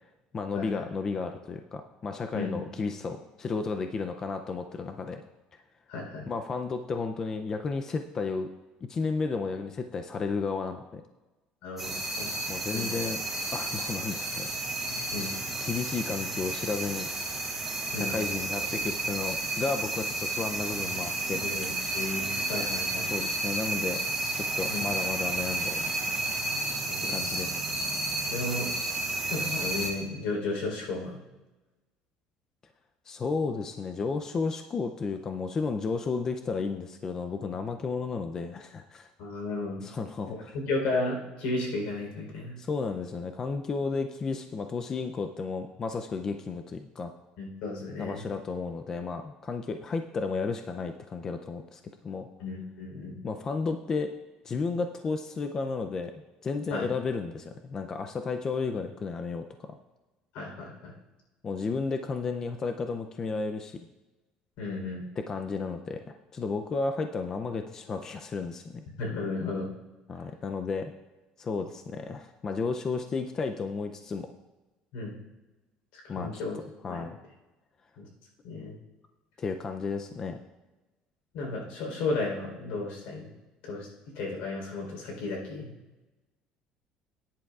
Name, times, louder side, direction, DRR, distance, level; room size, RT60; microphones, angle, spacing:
voice 1, 0.3-5.2 6.3-8.5 8.9-11.0 12.5-13.2 13.5-14.5 15.6-17.1 18.0-21.4 23.0-24.0 24.3-26.2 27.1-27.7 33.1-39.1 39.8-40.5 42.6-47.1 48.0-52.3 53.2-54.1 54.4-56.1 56.4-59.8 61.4-63.9 65.2-68.8 70.1-70.9 71.4-74.3 76.1-76.3 76.8-77.2 79.4-80.4, left 4 dB, 25° left, 6 dB, 0.4 m, -33 dB
voice 2, 5.9-6.3 11.6-11.9 12.2-13.0 15.1-15.4 17.9-18.2 21.3-23.1 24.7-24.9 26.9-27.4 28.3-28.7 29.2-31.2 39.2-39.8 40.3-42.6 47.4-48.2 52.4-53.2 56.7-56.9 60.3-60.9 64.6-65.0 69.0-69.7 74.9-75.2 75.9-76.6 76.9-77.0 78.0-78.1 78.4-78.8 81.3-83.3 83.6-83.9 84.1-85.7, left 3 dB, 80° left, -1 dB, 3.8 m, -34 dB
sound 1, 11.8-29.9, right 2 dB, 5° right, 2.4 m, -32 dB
18.5 x 10.0 x 2.4 m, 1.1 s
cardioid pair, 170°, 2 cm